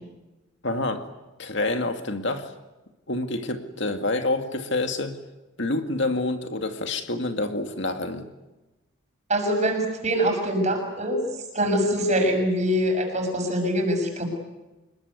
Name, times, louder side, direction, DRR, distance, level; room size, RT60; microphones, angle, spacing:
voice 1, 0.6-1.1 1.4-2.5 3.1-5.2 5.6-8.3, left 2 dB, 55° left, 6 dB, 2.1 m, -27 dB
voice 2, 9.3-11.3 11.5-14.2, equal, 35° right, 3 dB, 6.7 m, -24 dB
26.5 x 21.5 x 9.6 m, 1.1 s
head